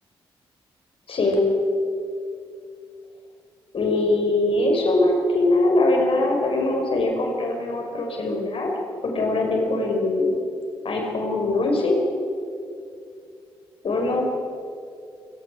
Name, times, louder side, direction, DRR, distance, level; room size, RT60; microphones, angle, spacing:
voice 1, 1.1-1.5 3.7-8.7 9.0-10.3 10.8-12.0 13.8-14.2, left 2 dB, 50° left, 1 dB, 5.7 m, -22 dB
29.0 x 18.0 x 5.0 m, 2.4 s
hypercardioid pair, 40°, 12 cm